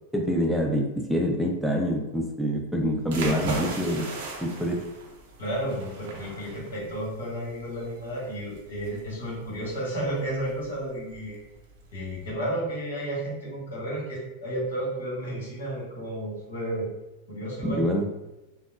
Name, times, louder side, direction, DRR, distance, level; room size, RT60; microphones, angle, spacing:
voice 1, 0.1-4.1 4.4-4.8 17.6-18.0, equal, ahead, 1 dB, 0.5 m, -26 dB
sound 1, 3.0-12.3, right 3 dB, 55° right, 0.5 m, -38 dB
voice 2, 5.4-11.4 11.9-16.9 17.3-17.8, right 1 dB, 65° left, -5 dB, 1.2 m, -32 dB
3.5 x 2.0 x 2.4 m, 1.0 s
figure-of-eight pair, 90°, 0 cm